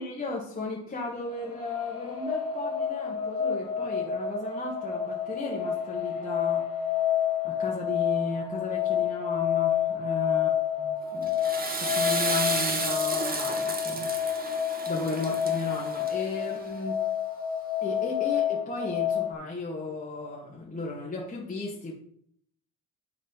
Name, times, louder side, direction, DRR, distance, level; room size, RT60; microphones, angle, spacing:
voice 1, 0.0-6.7 7.4-10.5 10.8-11.4 11.8-14.1 14.9-17.0 17.8-21.9, left 2 dB, 30° left, -4 dB, 2.0 m, -35 dB
sound 1, 1.2-19.3, left 9 dB, 50° left, 2.4 m, -29 dB
Water / Toilet flush, 11.2-16.5, right 3 dB, 30° right, 1.8 m, -32 dB
11.0 x 4.2 x 5.4 m, 0.64 s
cardioid pair, 90°, 30 cm